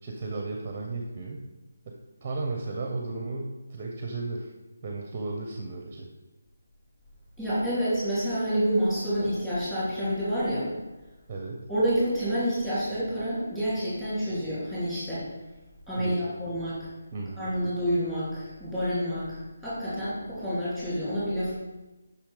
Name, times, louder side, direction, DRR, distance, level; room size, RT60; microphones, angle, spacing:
voice 1, 0.0-1.4 1.9-2.0 2.2-4.5 4.8-6.1 11.3-11.6 16.0-16.3 17.1-17.5, right 3 dB, 20° right, 2 dB, 0.7 m, -34 dB
voice 2, 7.4-10.7 11.7-15.2 15.9-16.8 17.4-21.5, equal, 5° left, -12 dB, 3.1 m, -28 dB
7.3 x 5.8 x 4.9 m, 1.1 s
hypercardioid pair, 175°, 0 cm